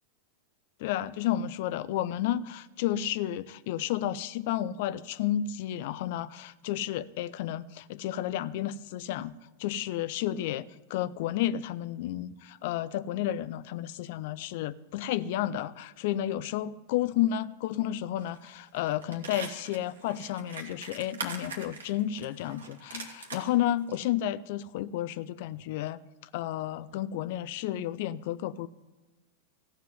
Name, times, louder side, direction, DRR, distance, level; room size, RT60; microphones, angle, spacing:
voice 1, 0.8-9.3 9.6-26.0 26.3-28.7, left 12 dB, 60° left, 0.6 m, -31 dB
sound 1, 18.2-18.5 18.7-23.5 23.9-24.0, right 5 dB, 80° right, 2.1 m, -41 dB
14.5 x 7.5 x 9.5 m
hypercardioid pair, 95°, 0 cm